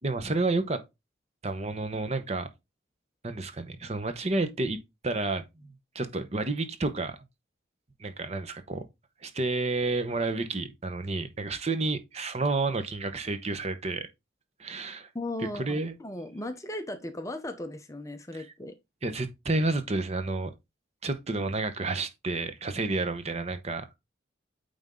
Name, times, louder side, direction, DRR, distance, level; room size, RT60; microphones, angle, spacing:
voice 1, 0.0-0.8 1.4-2.5 3.2-4.8 5.0-7.2 8.0-8.8 9.2-14.1 14.6-15.1 15.5-15.9 18.3-18.4 19.0-20.5 21.0-24.0, right 3 dB, 35° right, 0.8 m, -30 dB
voice 2, 15.1-18.7, left 1 dB, 15° left, 0.7 m, -37 dB
9.1 x 3.6 x 3.7 m
head